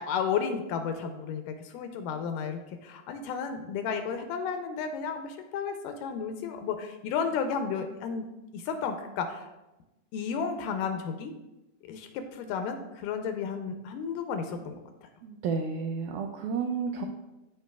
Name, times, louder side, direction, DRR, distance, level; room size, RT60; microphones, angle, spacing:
voice 1, 0.0-8.3 8.5-9.5 10.1-11.3 11.8-14.8, left 6 dB, 80° left, 6 dB, 2.1 m, -33 dB
voice 2, 15.2-17.1, right 5 dB, 85° right, 3 dB, 1.7 m, -31 dB
13.0 x 4.7 x 2.3 m, 1.0 s
omnidirectional pair, 4.1 m